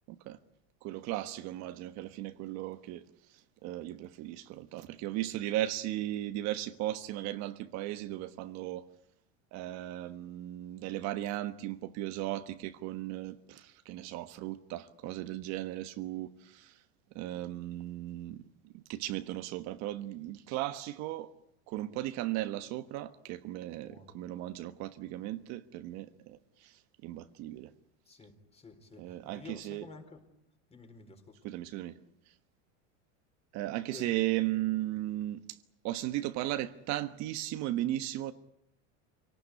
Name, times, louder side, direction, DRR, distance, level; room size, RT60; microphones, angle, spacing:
voice 1, 0.1-0.4 0.8-3.0 3.6-8.8 9.5-16.8 17.1-18.4 18.7-21.3 21.7-27.7 29.0-29.9 31.4-32.0 33.5-35.6 35.8-38.3, right 15 dB, 50° right, 1.3 m, -36 dB
voice 2, 23.8-24.1 28.1-30.2 30.7-31.4 33.9-34.2, left 4 dB, 15° left, 4.4 m, -51 dB
26.5 x 18.5 x 9.9 m
supercardioid pair, 145°, 36 cm